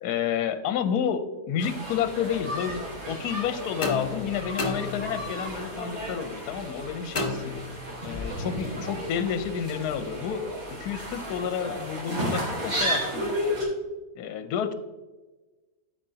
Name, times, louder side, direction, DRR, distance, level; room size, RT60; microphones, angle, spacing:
voice 1, 0.0-7.5 8.0-10.5 10.8-13.4 14.2-14.7, left 8 dB, 75° left, 11 dB, 1.1 m, -30 dB
sound 1, 1.6-13.6, equal, 60° right, 2.7 m, -33 dB
sound 2, 3.8-5.5 7.1-8.1, left 2 dB, 30° left, 1.6 m, -32 dB
14.0 x 5.1 x 2.7 m, 1.2 s
omnidirectional pair, 1.7 m